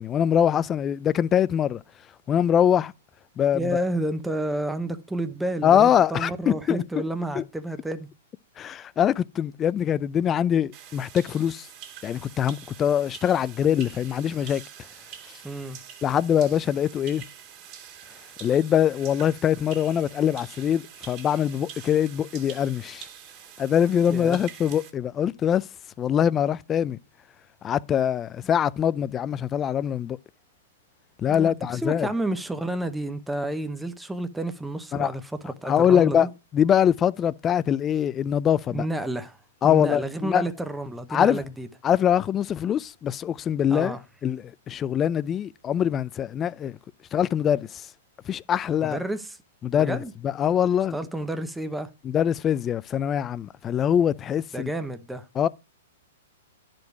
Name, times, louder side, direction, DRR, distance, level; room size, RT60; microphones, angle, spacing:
voice 1, 0.0-1.8 2.3-2.9 3.4-3.7 5.6-7.0 7.4-7.5 8.6-11.7 12.0-14.6 16.0-17.2 18.4-23.1 23.6-25.6 26.0-27.0 27.6-30.2 31.2-32.1 34.9-35.1 35.7-36.3 36.5-38.9 39.6-40.5 41.1-41.4 41.8-44.0 44.2-46.8 47.1-47.9 48.3-49.0 49.6-50.0 50.2-51.0 52.0-54.7 55.4-55.5, left 9 dB, 20° left, 0.4 m, -23 dB
voice 2, 3.5-8.1 15.4-15.8 24.1-24.4 31.3-36.3 38.7-39.4 39.6-41.7 43.7-44.0 48.8-49.4 49.7-50.1 50.9-51.9 54.5-55.3, right 1 dB, 5° right, 0.8 m, -30 dB
sound 1, 10.7-24.9, right 9 dB, 40° right, 2.3 m, -45 dB
10.5 x 5.1 x 4.6 m
hypercardioid pair, 135°, 0 cm